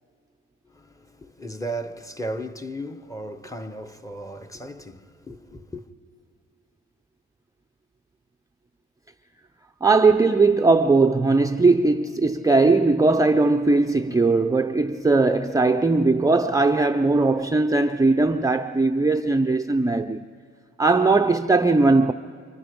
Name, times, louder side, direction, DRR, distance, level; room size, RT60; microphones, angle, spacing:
voice 1, 0.7-5.9, right 1 dB, 10° left, 1.0 m, -35 dB
voice 2, 9.8-20.2 20.8-22.1, right 3 dB, 10° right, 0.5 m, -19 dB
29.0 x 27.0 x 5.2 m
cardioid pair, 90°, 30 cm